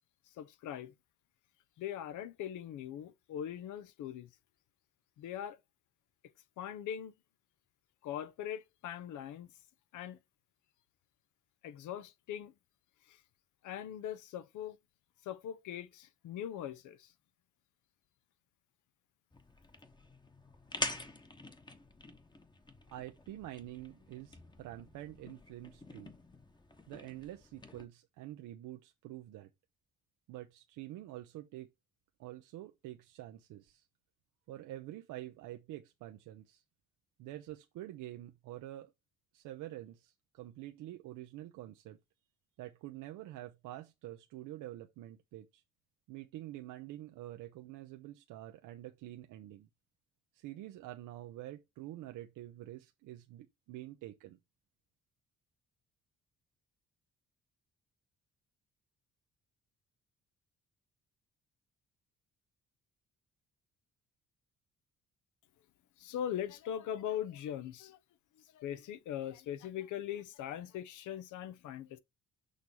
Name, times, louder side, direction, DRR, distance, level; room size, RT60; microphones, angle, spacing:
voice 1, 0.3-0.9 1.8-4.3 5.2-5.6 6.6-7.1 8.0-9.5 9.9-10.2 11.6-12.5 13.1-13.2 13.6-14.8 15.2-17.1 66.0-68.0 68.4-72.0, left 10 dB, 80° left, 0.7 m, -41 dB
industrial skipbin chainlinks, 19.3-27.9, left 2 dB, 15° left, 1.0 m, -46 dB
voice 2, 22.9-26.1 26.9-29.5 30.3-31.7 32.2-33.9 34.5-36.6 37.2-38.9 39.3-42.0 42.6-45.6 46.1-49.7 50.3-54.4, right 14 dB, 90° right, 0.7 m, -47 dB
6.5 x 3.1 x 5.3 m
cardioid pair, 90°, 30 cm